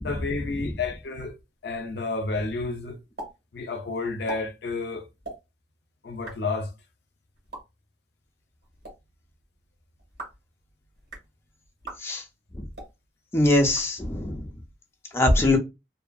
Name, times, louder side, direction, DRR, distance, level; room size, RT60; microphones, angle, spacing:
voice 1, 0.0-1.3 1.6-3.0 3.5-5.1 6.0-6.7, left 3 dB, 65° left, 0.5 m, -30 dB
sound 1, 3.2-3.3 3.6-3.7 4.1-4.4 5.2-5.4 6.1-6.4 7.4-7.6 8.6-8.9 10.0-10.4 11.0-11.3 11.8-12.0 12.7-12.9 13.6-14.3, right 2 dB, 60° right, 1.2 m, -40 dB
voice 2, 13.3-14.4 15.1-15.6, left 1 dB, 15° left, 0.4 m, -21 dB
2.6 x 2.5 x 2.2 m
head